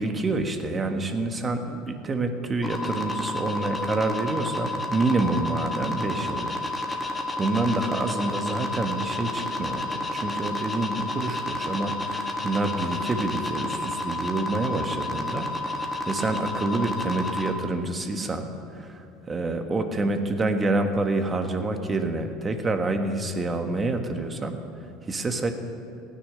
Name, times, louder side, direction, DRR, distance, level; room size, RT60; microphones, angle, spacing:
voice 1, 0.0-6.6 6.9-24.6 25.0-25.5, right 2 dB, 25° right, 6 dB, 1.4 m, -27 dB
sound 1, 2.6-17.5, left 2 dB, 20° left, 1.6 m, -31 dB
16.0 x 9.8 x 6.6 m, 2.7 s
supercardioid pair, 95°, 0 cm